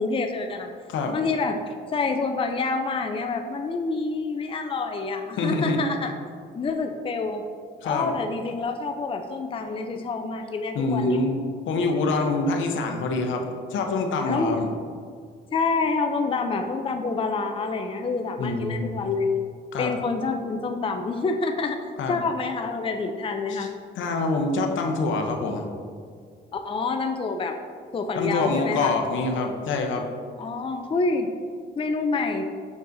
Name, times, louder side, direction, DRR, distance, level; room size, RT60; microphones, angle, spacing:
voice 1, 0.0-0.7 1.1-6.1 6.5-7.5 7.8-11.2 14.3-14.6 15.5-19.3 19.8-23.7 26.5-27.6 27.9-28.9 30.4-31.3 31.8-32.4, left 4 dB, 25° left, 5 dB, 0.5 m, -27 dB
voice 2, 5.4-5.8 7.8-8.1 10.7-11.4 11.7-13.4 13.7-14.7 18.4-19.0 19.7-19.9 22.0-22.2 23.5-23.7 24.0-25.7 28.2-30.0, left 3 dB, 75° left, 3 dB, 0.8 m, -25 dB
7.1 x 6.3 x 2.7 m, 2.1 s
cardioid pair, 90°, 20 cm